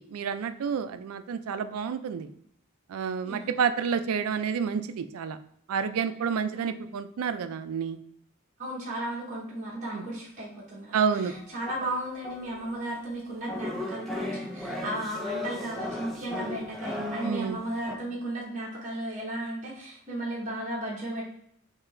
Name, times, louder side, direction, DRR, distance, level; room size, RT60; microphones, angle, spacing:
voice 1, 0.0-2.3 2.9-5.4 5.7-8.0 9.9-10.0 10.9-11.3 17.2-17.6, right 6 dB, 85° right, 11 dB, 0.3 m, -29 dB
voice 2, 8.6-21.3, right 1 dB, 35° right, -5 dB, 0.9 m, -35 dB
sound 1, 11.3-12.8 13.5-18.0, left 2 dB, ahead, 0.4 m, -36 dB
3.7 x 2.7 x 3.2 m, 0.70 s
head